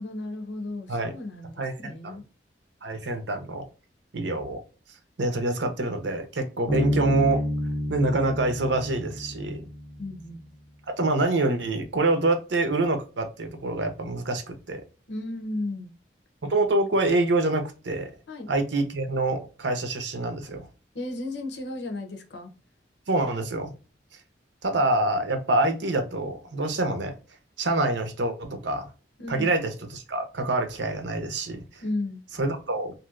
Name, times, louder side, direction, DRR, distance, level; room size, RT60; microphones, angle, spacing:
voice 1, 0.0-2.2 10.0-10.5 15.1-15.9 18.3-18.5 20.9-22.5 29.2-29.5 31.8-32.2, left 2 dB, 70° left, 0.7 m, -34 dB
voice 2, 1.6-2.2 2.8-3.7 4.1-4.6 5.2-7.5 7.9-9.6 11.0-14.8 16.4-18.1 18.5-20.7 23.1-23.7 24.6-27.2 27.6-28.9 29.3-31.8 32.4-32.9, right 2 dB, 80° right, 0.7 m, -26 dB
Bass guitar, 6.7-10.1, left 1 dB, 15° left, 0.6 m, -29 dB
3.1 x 2.6 x 2.4 m
head